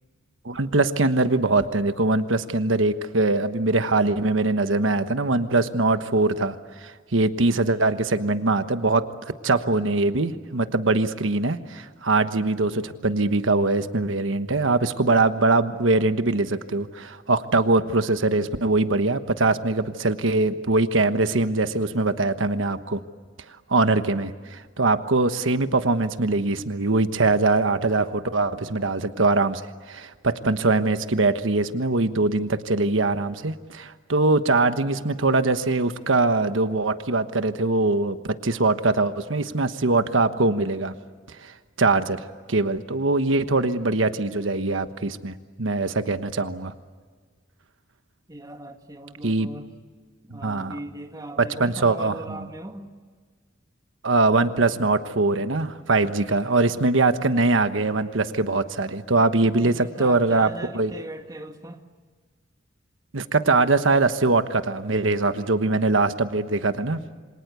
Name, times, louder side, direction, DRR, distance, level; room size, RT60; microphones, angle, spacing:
voice 1, 0.4-6.6 6.8-9.1 9.4-23.0 23.7-29.6 29.9-40.9 41.4-46.7 49.2-49.5 50.3-50.7 51.4-52.4 54.0-60.9 63.1-67.0, right 3 dB, 80° right, 10 dB, 1.3 m, -22 dB
voice 2, 48.3-49.8 50.2-52.9 59.6-61.8, right 1 dB, 20° right, 5 dB, 2.1 m, -39 dB
28.0 x 25.5 x 8.3 m, 1.5 s
head